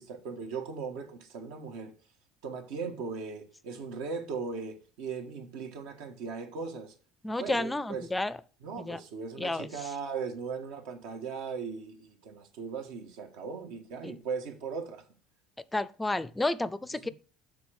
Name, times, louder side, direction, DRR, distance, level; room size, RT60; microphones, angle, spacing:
voice 1, 0.0-1.9 2.4-6.9 7.4-8.1 8.6-15.0 16.9-17.1, right 5 dB, 85° right, 1.6 m, -38 dB
voice 2, 7.2-8.4 8.8-9.0 9.4-9.7 14.0-14.1 15.7-17.1, left 2 dB, 10° left, 0.4 m, -31 dB
7.0 x 3.9 x 6.4 m
cardioid pair, 135°, 0 cm